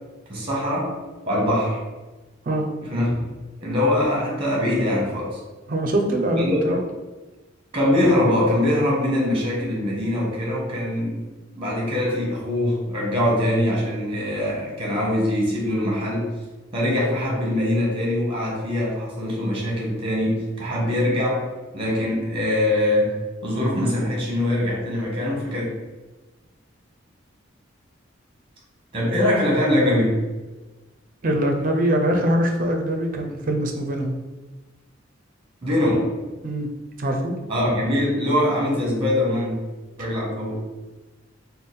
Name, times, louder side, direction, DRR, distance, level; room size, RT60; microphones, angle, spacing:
voice 1, 0.3-0.9 1.3-1.8 2.9-3.2 3.6-5.4 6.4-6.8 7.7-11.2 11.5-16.3 16.7-21.5 21.7-23.2 23.4-25.7 28.9-30.2 35.6-36.1 37.5-39.7 40.0-40.6, left 1 dB, 30° right, -3 dB, 1.1 m, -22 dB
voice 2, 5.7-6.8 31.2-34.1 36.4-36.7 37.0-37.3, right 1 dB, 45° right, 3 dB, 0.5 m, -23 dB
3.4 x 2.1 x 4.1 m, 1.2 s
head